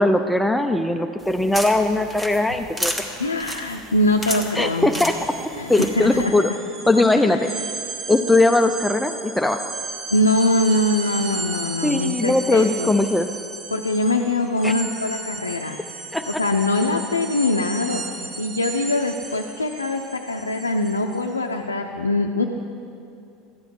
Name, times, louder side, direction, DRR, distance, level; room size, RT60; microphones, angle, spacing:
voice 1, 0.0-3.1 4.6-5.1 5.4-6.5 6.9-7.5 8.1-9.7 11.8-13.3 14.6-14.7 16.1-16.2, left 2 dB, 5° left, 6 dB, 0.5 m, -20 dB
sound 1, 1.2-6.2, equal, 10° right, 1.3 m, -32 dB
voice 2, 3.2-4.9 5.5-6.3 7.2-7.7 10.1-12.9 13.7-15.8 16.3-22.4, left 2 dB, 85° left, 2 dB, 0.5 m, -23 dB
sound 2, 3.7-3.8 4.1-21.3, right 4 dB, 30° right, 1.2 m, -35 dB
13.5 x 9.6 x 4.7 m, 2.5 s
figure-of-eight pair, 75°, 0 cm